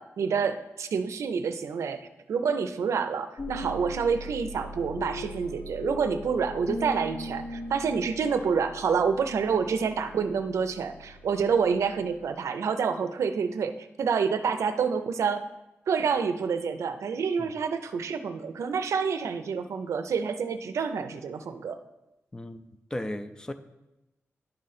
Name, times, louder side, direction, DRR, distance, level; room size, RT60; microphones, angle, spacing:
voice 1, 0.0-15.4 15.9-21.8, right 6 dB, 85° right, 0.4 m, -28 dB
sound 1, 3.4-12.3, left 1 dB, 55° left, 0.8 m, -40 dB
voice 2, 22.3-22.6 22.9-23.5, left 1 dB, 15° left, 0.4 m, -35 dB
10.5 x 3.8 x 4.1 m
wide cardioid pair, 110°, 5 cm